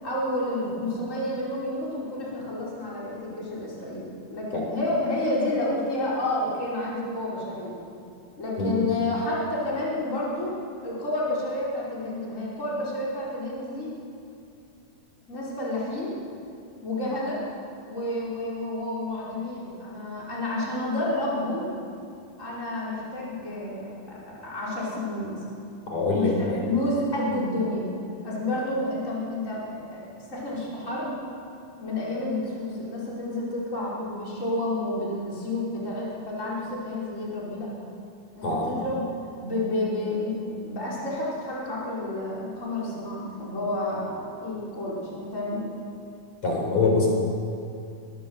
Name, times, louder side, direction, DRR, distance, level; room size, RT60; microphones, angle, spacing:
voice 1, 0.0-7.8 8.4-10.6 10.8-13.9 15.3-16.2 16.8-17.4 17.8-21.7 22.4-25.4 26.1-27.9 28.2-31.1 31.8-37.7 38.4-39.0 39.4-45.7, left 1 dB, 20° left, -7 dB, 5.5 m, -30 dB
voice 2, 25.9-26.6 38.4-38.7 46.4-47.1, left 3 dB, 55° left, 0 dB, 5.7 m, -24 dB
23.5 x 18.5 x 8.1 m, 2.6 s
omnidirectional pair, 3.7 m